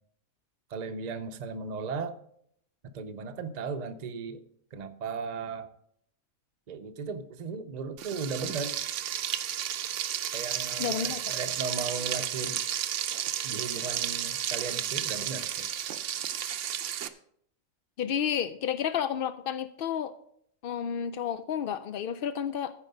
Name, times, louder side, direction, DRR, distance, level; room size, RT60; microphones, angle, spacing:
voice 1, 0.7-2.1 2.8-4.4 4.7-5.7 6.7-8.7 10.3-12.6 13.4-15.7, right 4 dB, 40° right, 8 dB, 0.6 m, -36 dB
Frying (food), 8.0-17.1, right 10 dB, 65° right, 0.9 m, -32 dB
voice 2, 10.8-11.2 18.0-20.1 20.6-22.7, left 8 dB, 80° left, 11 dB, 0.5 m, -31 dB
14.5 x 4.9 x 5.3 m, 0.69 s
omnidirectional pair, 1.5 m